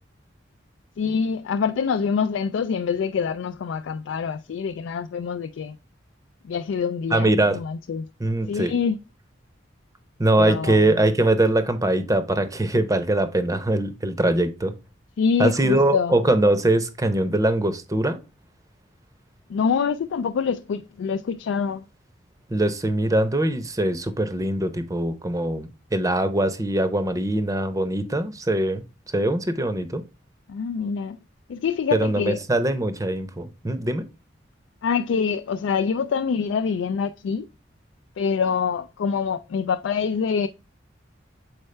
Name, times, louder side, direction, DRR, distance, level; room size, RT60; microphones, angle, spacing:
voice 1, 1.0-5.8 6.4-8.1 8.5-9.0 10.3-11.0 15.2-16.2 19.5-21.8 30.5-31.2 31.5-32.4 34.8-37.5 38.2-40.5, left 6 dB, 75° left, 0.3 m, -25 dB
voice 2, 7.1-7.6 8.2-8.7 10.2-14.7 15.4-18.2 22.5-28.8 29.1-30.0 31.9-34.0, right 1 dB, 15° right, 0.6 m, -22 dB
6.6 x 4.4 x 3.2 m
head